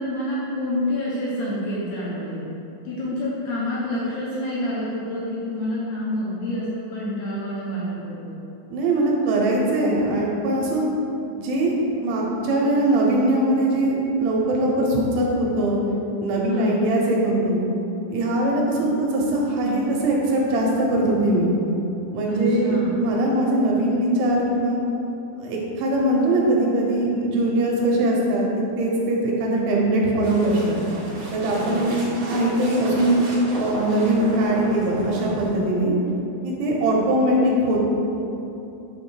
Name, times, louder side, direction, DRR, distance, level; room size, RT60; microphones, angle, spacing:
voice 1, 0.0-2.4 2.9-8.4 16.5-16.7 22.3-23.0 31.5-31.8, left 1 dB, 70° left, -8 dB, 2.6 m, -28 dB
voice 2, 8.7-10.8 11.4-11.7 12.0-15.8 16.2-17.6 18.1-21.5 22.1-24.8 25.4-28.5 28.8-30.8 31.3-31.9 32.3-33.2 33.6-35.9 36.4-37.9, right 1 dB, 80° right, -3 dB, 3.2 m, -21 dB
sound 1, 30.2-35.6, equal, 60° right, 2.0 m, -33 dB
7.7 x 3.1 x 6.3 m, 2.9 s
omnidirectional pair, 5.6 m